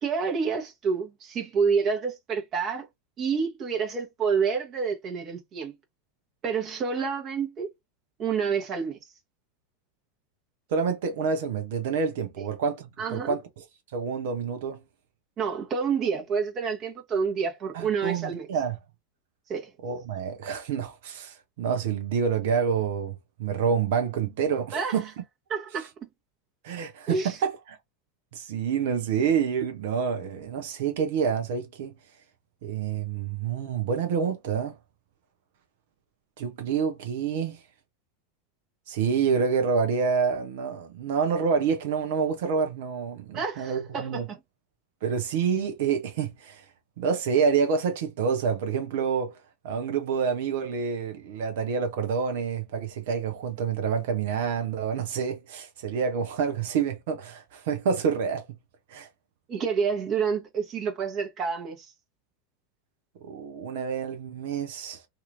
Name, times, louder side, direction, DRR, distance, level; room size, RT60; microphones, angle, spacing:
voice 1, 0.0-2.9 3.2-5.7 6.4-7.7 8.2-9.0 13.0-13.3 15.4-18.5 19.5-19.7 24.7-25.0 25.5-26.1 27.1-27.4 43.3-44.4 59.5-61.9, right 6 dB, 35° right, 1.0 m, -28 dB
voice 2, 10.7-13.6 13.9-14.8 17.7-18.8 19.8-25.1 26.6-27.8 28.3-31.9 32.6-34.7 36.4-37.6 38.9-44.2 45.0-46.6 47.0-49.4 49.6-58.5 58.9-59.1 63.2-65.0, right 6 dB, 55° right, 0.7 m, -28 dB
2.8 x 2.6 x 2.5 m
figure-of-eight pair, 85°, 0 cm